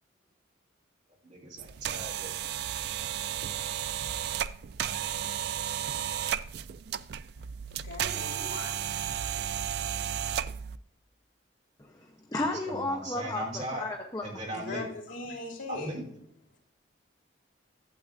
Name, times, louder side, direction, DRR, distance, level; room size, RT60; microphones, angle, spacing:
voice 1, 1.3-2.3 12.7-13.9 14.2-14.8 15.7-16.1, right 1 dB, 40° right, -2 dB, 2.7 m, -38 dB
sound 1, 1.6-10.8, right 10 dB, 55° right, 0.3 m, -33 dB
voice 2, 7.4-9.1 14.5-16.0, left 2 dB, 80° left, -1 dB, 2.7 m, -40 dB
voice 3, 11.8-14.5, left 2 dB, 20° left, 2 dB, 0.7 m, -34 dB
12.0 x 7.8 x 2.6 m, 0.69 s
head